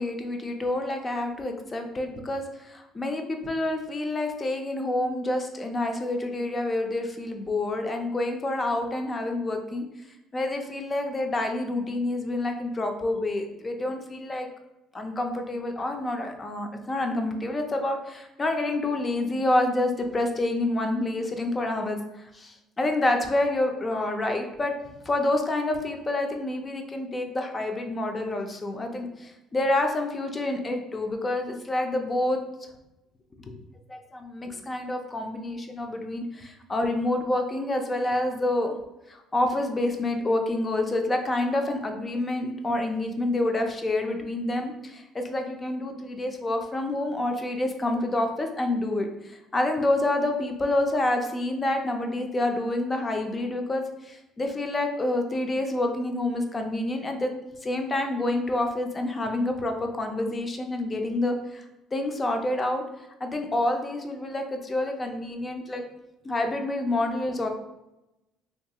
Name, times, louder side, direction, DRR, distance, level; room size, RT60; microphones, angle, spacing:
voice 1, 0.0-9.8 10.3-14.5 14.9-24.7 25.1-32.4 33.4-33.5 33.9-38.8 39.1-57.3 57.6-61.6 61.9-62.8 63.2-65.8 66.2-67.5, left 2 dB, 20° left, 4 dB, 0.4 m, -28 dB
2.9 x 2.3 x 2.7 m, 0.92 s
cardioid pair, 125°, 0 cm